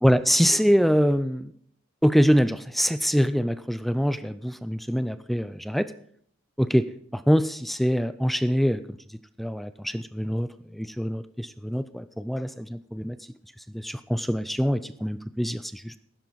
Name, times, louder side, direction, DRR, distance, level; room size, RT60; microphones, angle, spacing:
voice 1, 0.0-1.5 2.0-5.9 6.6-6.9 7.1-8.8 9.4-13.2 13.7-16.0, equal, ahead, 12 dB, 0.4 m, -24 dB
15.0 x 13.0 x 4.0 m, 0.62 s
head